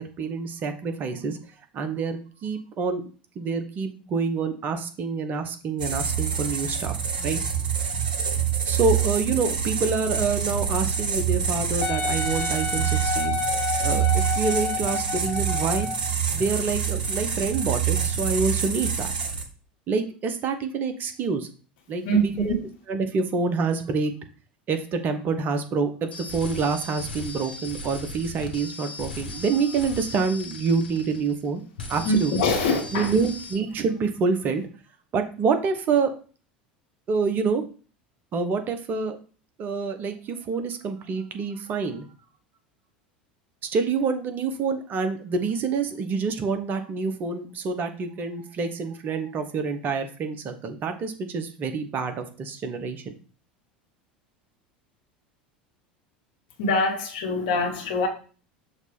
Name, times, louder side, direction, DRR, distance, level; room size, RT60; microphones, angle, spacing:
voice 1, 0.0-1.4 1.7-3.0 3.4-7.4 8.6-13.4 13.8-15.9 16.3-19.1 19.9-21.5 21.9-22.0 22.9-24.2 24.7-31.6 31.9-32.3 32.9-34.7 35.1-36.2 37.1-37.6 38.3-39.2 39.6-42.1 43.7-53.0, right 4 dB, 35° right, 7 dB, 1.0 m, -27 dB
sound 1, 5.8-19.4, right 7 dB, 65° right, 1.1 m, -26 dB
Wind instrument woodwind instrument, 11.8-16.1 16.8-16.9, left 5 dB, 35° left, 1.2 m, -30 dB
voice 2, 22.0-22.6 32.0-33.1 56.6-58.1, left 1 dB, 60° left, 3 dB, 1.6 m, -24 dB
sound 2, 26.1-31.5 31.8-33.5, left 2 dB, 80° left, 1.3 m, -38 dB
6.4 x 3.1 x 5.2 m, 0.38 s
figure-of-eight pair, 75°, 5 cm